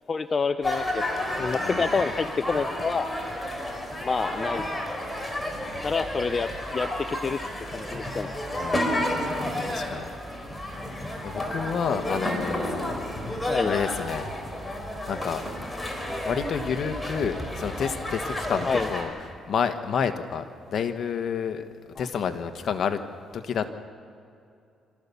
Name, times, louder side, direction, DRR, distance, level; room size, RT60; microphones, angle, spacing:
voice 1, 0.1-1.0 1.4-3.1 4.0-4.7 5.8-7.4 7.7-8.3 13.5-13.7 18.6-18.9 22.0-22.1, left 5 dB, 35° left, 10 dB, 0.6 m, -28 dB
sound 1, 0.6-19.0, left 1 dB, 10° left, 4.2 m, -31 dB
voice 2, 8.5-10.1 11.2-13.0 13.6-14.3 15.1-15.5 16.2-19.1 19.5-20.4 20.7-21.6 22.0-23.0 23.3-23.7, left 7 dB, 60° left, 8 dB, 1.4 m, -29 dB
26.5 x 14.0 x 7.1 m, 2.5 s
cardioid pair, 90°, 0 cm